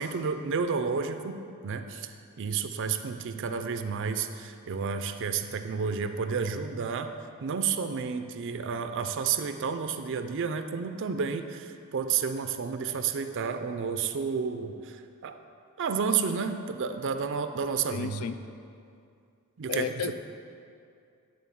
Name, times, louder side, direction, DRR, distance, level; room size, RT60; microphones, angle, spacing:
voice 1, 0.0-7.1 7.4-15.4 15.8-18.3 19.6-19.9, right 6 dB, 55° right, 8 dB, 0.4 m, -31 dB
voice 2, 17.9-18.4 19.7-20.1, left 7 dB, 70° left, 10 dB, 0.4 m, -32 dB
10.5 x 3.9 x 7.1 m, 2.4 s
head